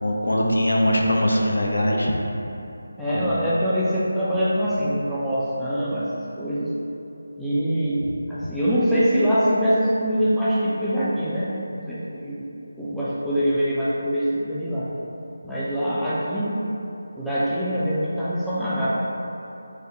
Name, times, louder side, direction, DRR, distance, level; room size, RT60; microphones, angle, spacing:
voice 1, 0.0-2.1 3.1-3.3, left 1 dB, 65° left, -1 dB, 0.5 m, -21 dB
voice 2, 3.0-6.1 6.4-6.7 7.4-8.0 8.3-12.4 12.8-14.9 15.4-16.6 17.2-18.9, equal, ahead, -13 dB, 0.4 m, -24 dB
4.8 x 2.1 x 3.0 m, 2.9 s
figure-of-eight pair, 160°, 0 cm